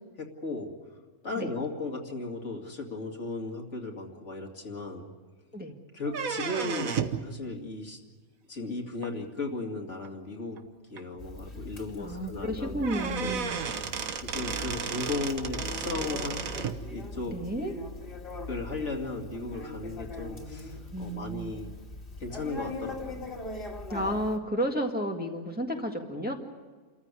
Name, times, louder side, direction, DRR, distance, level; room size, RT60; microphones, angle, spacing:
voice 1, 0.2-0.7 1.2-5.1 5.9-8.0 8.5-10.6 10.9-12.9 13.2-14.0 14.3-16.4 16.9-17.3 18.5-21.7 22.2-23.2, left 2 dB, 60° left, 1 dB, 2.7 m, -36 dB
sound 1, 6.1-7.3 9.0-9.1 10.1-10.2 10.6-10.7 11.0-11.1 12.4-12.5 12.8-16.8, right 6 dB, 85° right, 1.6 m, -33 dB
Conversation, 11.2-24.4, left 2 dB, 40° left, 2.6 m, -41 dB
voice 2, 12.0-13.6 17.3-17.7 20.9-21.6 23.9-26.3, equal, 5° right, 1 dB, 1.7 m, -32 dB
28.0 x 14.5 x 9.6 m, 1.4 s
omnidirectional pair, 1.4 m